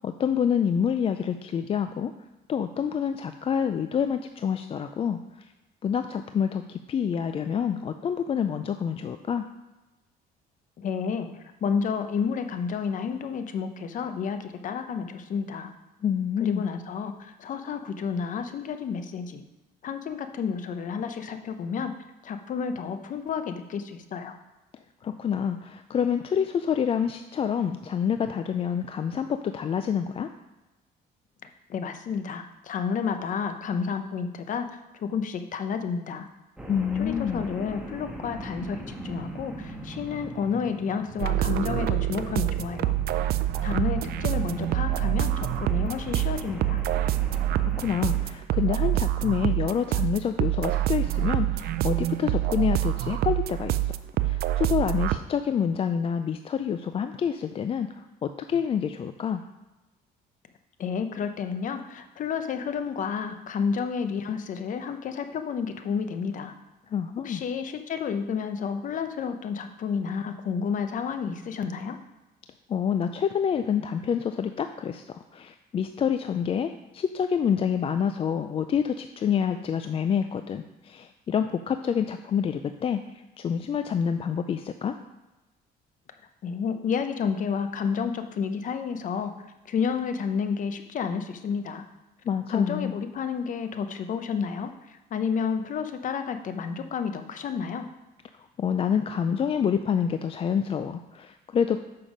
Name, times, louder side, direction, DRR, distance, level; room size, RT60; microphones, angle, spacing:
voice 1, 0.0-2.1 2.5-5.2 5.8-9.5 16.0-16.7 25.0-30.3 36.7-37.4 47.6-53.8 54.2-59.4 66.9-67.4 72.7-83.0 83.4-85.0 92.3-93.0 98.6-101.8, left 7 dB, 35° left, 8 dB, 0.4 m, -27 dB
voice 2, 10.8-15.7 16.4-19.4 19.8-21.9 22.2-24.4 31.7-34.7 34.9-36.3 37.0-42.9 43.6-46.8 60.8-66.5 67.2-72.0 86.4-89.3 89.7-91.8 92.5-97.9, left 6 dB, 50° left, 8 dB, 0.8 m, -30 dB
sound 1, 36.6-48.3, equal, 5° right, 1.4 m, -39 dB
Wet Square Techno Beat With Toppings, 41.2-55.2, right 14 dB, 65° right, 0.4 m, -26 dB
7.0 x 5.8 x 5.1 m, 1.1 s
cardioid pair, 110°, 17 cm